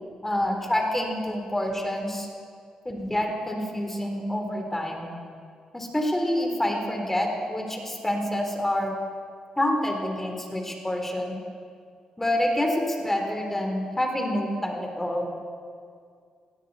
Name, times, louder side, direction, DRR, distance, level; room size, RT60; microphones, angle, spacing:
voice 1, 0.2-2.3 2.9-5.1 5.7-8.9 9.6-11.4 12.2-15.3, left 1 dB, 15° left, 2 dB, 3.6 m, -27 dB
18.5 x 16.5 x 4.2 m, 2.2 s
supercardioid pair, 55°, 2 cm